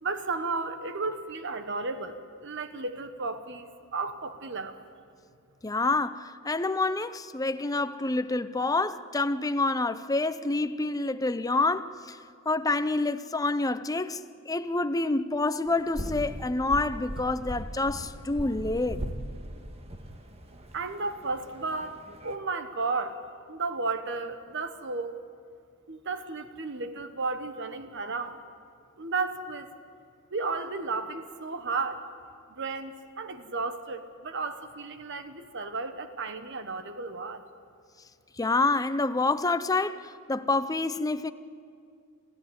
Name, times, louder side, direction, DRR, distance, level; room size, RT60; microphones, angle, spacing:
voice 1, 0.0-2.2 2.4-4.7 20.7-23.2 23.5-25.1 25.9-28.4 29.0-29.7 30.3-32.0 32.5-37.4, right 3 dB, 55° right, 1.2 m, -33 dB
voice 2, 5.6-12.2 12.5-14.2 14.5-19.0 38.4-41.3, left 3 dB, 15° left, 0.6 m, -27 dB
sound 1, 15.7-22.3, equal, 30° right, 1.6 m, -39 dB
27.0 x 15.0 x 9.4 m
head